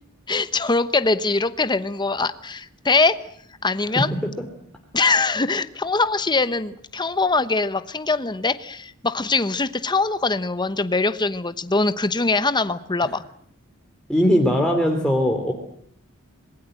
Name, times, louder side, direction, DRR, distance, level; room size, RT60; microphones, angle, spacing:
voice 1, 0.3-3.2 3.6-4.1 4.9-13.2, left 3 dB, 20° left, 12 dB, 1.0 m, -22 dB
voice 2, 14.1-15.5, equal, 5° left, 0 dB, 3.0 m, -19 dB
27.0 x 20.5 x 7.8 m, 0.67 s
head